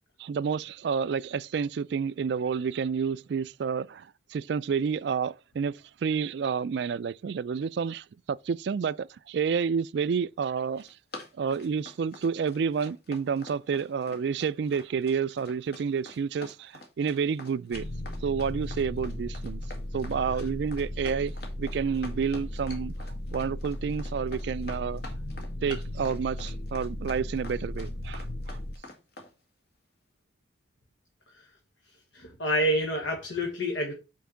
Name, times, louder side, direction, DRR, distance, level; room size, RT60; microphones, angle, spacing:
voice 1, 0.2-10.9 11.4-17.9 18.2-19.6 19.9-21.3 21.6-22.9 23.3-25.0 25.6-28.6, right 6 dB, 60° right, 0.3 m, -29 dB
Run, 10.6-29.3, left 2 dB, 55° left, 1.9 m, -46 dB
sound 1, 17.7-28.7, left 1 dB, 35° left, 0.6 m, -36 dB
voice 2, 32.1-33.9, equal, 85° left, 1.5 m, -28 dB
5.7 x 4.6 x 6.2 m
head